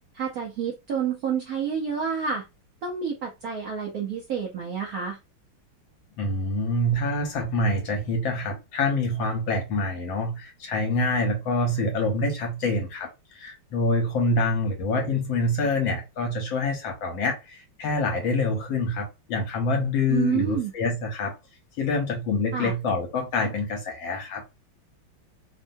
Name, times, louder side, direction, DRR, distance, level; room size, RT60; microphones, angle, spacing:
voice 1, 0.1-2.4 2.8-5.2 20.1-20.7 22.5-22.7, right 7 dB, 75° right, 0.8 m, -29 dB
voice 2, 6.2-21.3 21.8-24.4, left 2 dB, 70° left, 1.5 m, -26 dB
3.6 x 2.1 x 2.6 m
omnidirectional pair, 2.3 m